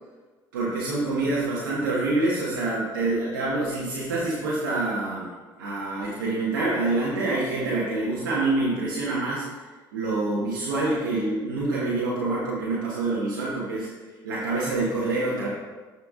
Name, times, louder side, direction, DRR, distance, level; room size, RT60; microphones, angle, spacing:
voice 1, 0.5-5.3 5.6-9.4 9.9-13.9 14.2-15.5, right 2 dB, 90° right, -7 dB, 1.3 m, -26 dB
10.5 x 4.6 x 3.7 m, 1.3 s
hypercardioid pair, 65°, 11 cm